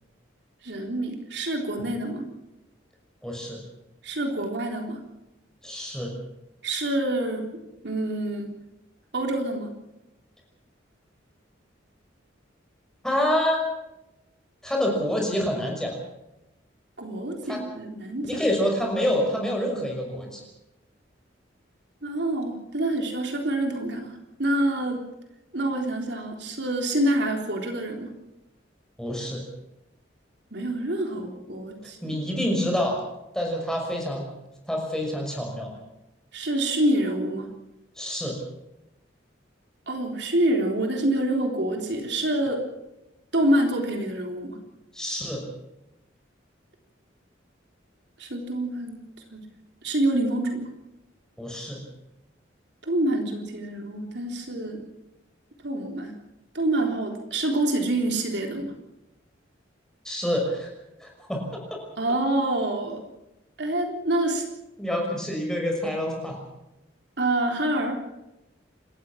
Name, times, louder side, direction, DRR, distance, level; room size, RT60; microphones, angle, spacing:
voice 1, 0.6-2.3 4.0-5.0 6.6-7.5 7.8-8.5 9.1-9.7 17.0-18.3 22.0-25.1 25.5-28.1 30.5-32.2 36.3-37.5 39.9-42.6 43.3-44.6 48.2-49.0 49.3-49.5 49.8-50.7 52.8-54.8 55.6-56.1 56.5-58.7 62.0-63.0 63.6-64.5 67.2-68.0, right 1 dB, 60° right, 3 dB, 3.6 m, -26 dB
voice 2, 3.2-3.6 5.6-6.1 13.0-13.6 14.6-15.9 17.5-17.6 18.2-20.4 29.0-29.4 32.0-33.0 33.3-34.3 34.7-35.7 38.0-38.4 44.9-45.5 51.4-51.8 60.0-60.7 61.0-61.4 64.8-66.4, equal, 5° left, 0 dB, 5.9 m, -27 dB
28.5 x 14.0 x 7.4 m, 0.93 s
head